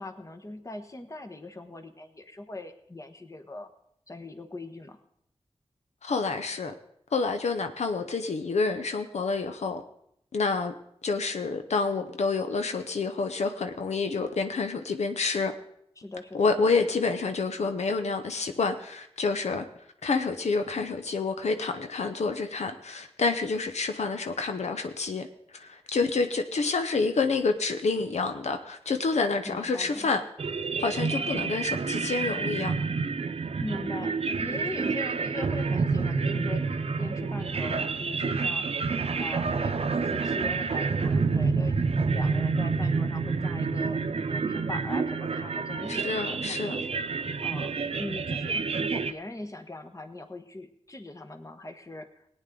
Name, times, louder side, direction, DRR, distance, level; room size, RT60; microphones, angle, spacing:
voice 1, 0.0-3.7 4.1-5.0 16.0-16.6 29.4-30.2 33.6-36.6 37.0-38.7 39.1-41.8 42.1-47.0 47.4-52.3, left 2 dB, 30° left, 1.2 m, -41 dB
voice 2, 6.0-6.7 7.1-9.8 10.3-10.7 11.0-15.5 16.3-19.6 20.0-25.3 25.5-30.2 30.8-32.7 45.9-46.8, left 4 dB, 85° left, 0.8 m, -28 dB
sound 1, 30.4-49.1, right 4 dB, 60° right, 0.7 m, -28 dB
18.0 x 9.2 x 3.8 m
wide cardioid pair, 70°, 11 cm